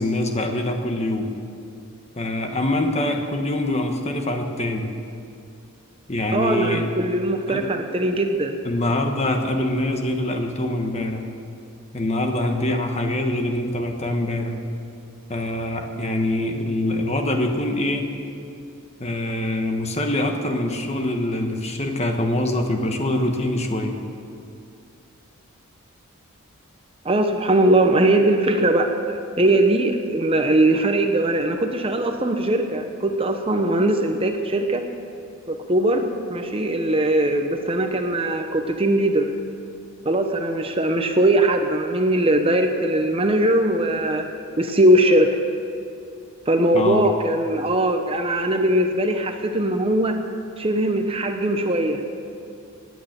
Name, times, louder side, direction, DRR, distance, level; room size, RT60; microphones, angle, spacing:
voice 1, 0.0-1.3 2.2-4.9 6.1-6.8 7.5-7.7 8.6-11.2 11.9-14.6 15.3-18.1 19.0-24.0 46.7-47.0, left 1 dB, 30° left, 4 dB, 1.3 m, -24 dB
voice 2, 6.3-8.6 27.0-34.8 35.5-39.3 40.0-44.3 44.6-45.4 46.5-50.2 50.6-52.0, right 1 dB, 25° right, 5 dB, 0.8 m, -20 dB
19.0 x 9.3 x 7.5 m, 2.5 s
head